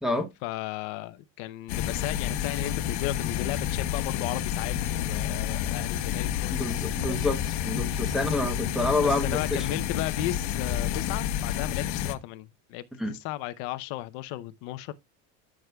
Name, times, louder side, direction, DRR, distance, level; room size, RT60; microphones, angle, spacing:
voice 1, 0.4-7.2 8.8-14.9, left 14 dB, 55° left, 0.7 m, -35 dB
sound 1, 1.7-12.1, left 10 dB, 75° left, 1.1 m, -29 dB
voice 2, 6.6-7.4 7.7-9.6 13.0-13.1, left 2 dB, ahead, 0.8 m, -28 dB
14.5 x 6.2 x 2.3 m
cardioid pair, 180°, 36 cm